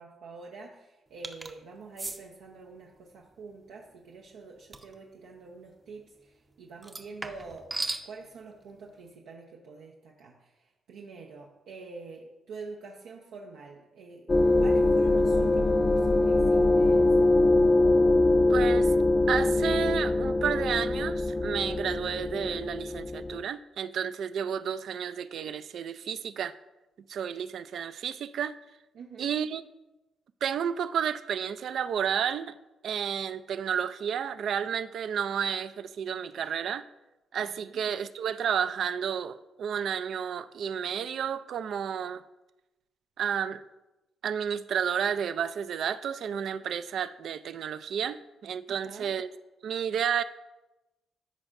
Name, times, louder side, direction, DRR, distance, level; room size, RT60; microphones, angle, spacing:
voice 1, 0.0-17.3 28.9-29.3 37.4-37.8 48.7-49.1, right 4 dB, 90° right, -1 dB, 0.7 m, -46 dB
sound 1, 1.2-1.5 2.0-2.2 4.7-4.9 6.8-8.1, right 2 dB, 25° right, 0.6 m, -36 dB
sound 2, 14.3-23.4, left 2 dB, 30° left, 0.4 m, -23 dB
voice 2, 18.5-18.9 19.3-26.6 27.1-28.6 29.2-29.6 30.4-32.5 32.8-36.8 37.3-42.2 43.2-43.6 44.2-49.3 49.6-50.2, right 8 dB, 70° right, 13 dB, 0.3 m, -31 dB
13.5 x 5.2 x 2.5 m, 1.0 s
cardioid pair, 85°, 0 cm